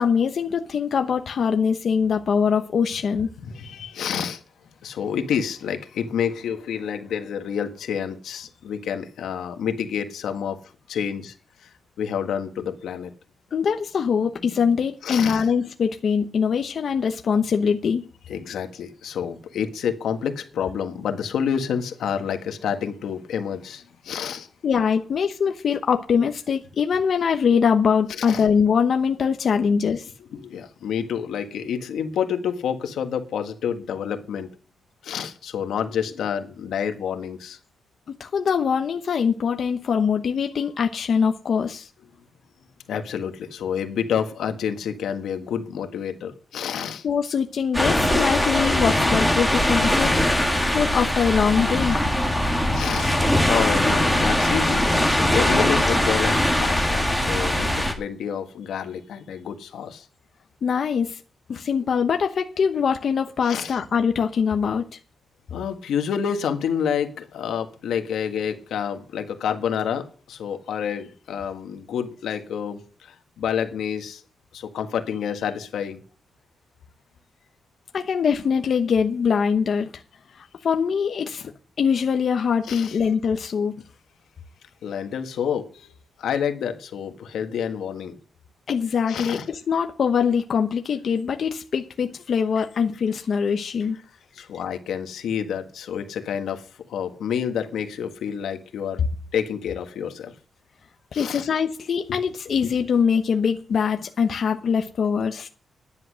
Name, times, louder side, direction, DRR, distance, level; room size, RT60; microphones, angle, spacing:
voice 1, 0.0-3.3 13.5-18.0 24.6-30.1 38.1-41.9 47.0-52.0 60.6-61.2 61.5-65.0 77.9-79.9 80.4-81.5 81.8-83.8 88.7-94.0 101.1-105.5, left 6 dB, 50° left, 0.9 m, -23 dB
voice 2, 3.5-4.4 4.8-10.6 10.9-11.3 12.0-13.1 15.0-15.4 18.3-24.5 28.2-28.4 30.3-34.5 35.0-37.6 42.9-47.0 52.7-60.0 63.4-63.8 65.5-74.2 74.5-76.0 82.7-83.0 84.8-85.9 86.2-88.2 89.1-89.5 94.3-99.0 99.3-100.3 101.1-101.5 102.1-102.2, left 8 dB, 90° left, 1.6 m, -28 dB
sound 1, 47.7-57.9, left 1 dB, 5° right, 1.8 m, -21 dB
10.5 x 10.0 x 6.3 m
wide cardioid pair, 160°, 0 cm